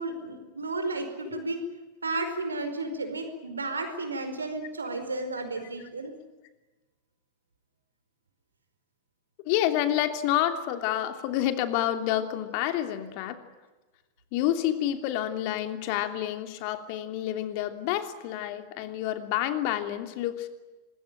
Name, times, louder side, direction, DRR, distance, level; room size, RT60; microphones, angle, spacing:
voice 1, 0.0-1.6 2.0-6.1, right 2 dB, 75° right, 8 dB, 4.8 m, -33 dB
voice 2, 9.4-13.4 14.3-20.5, left 12 dB, 45° left, 8 dB, 2.9 m, -28 dB
26.0 x 22.0 x 9.1 m, 1.2 s
figure-of-eight pair, 90°, 0 cm